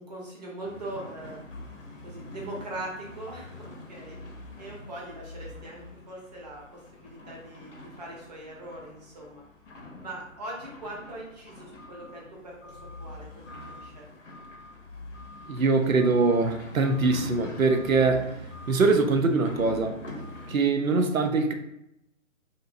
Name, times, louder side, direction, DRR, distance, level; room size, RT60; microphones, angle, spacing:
voice 1, 0.0-1.4 2.0-9.4 10.0-14.1, right 1 dB, 30° right, -3 dB, 0.7 m, -41 dB
sound 1, 0.6-20.6, left 1 dB, 60° left, 0.7 m, -44 dB
voice 2, 15.5-18.3 18.7-20.0 20.5-21.5, right 3 dB, 90° right, 6 dB, 0.5 m, -23 dB
2.7 x 2.6 x 2.6 m, 0.84 s
figure-of-eight pair, 135°, 40 cm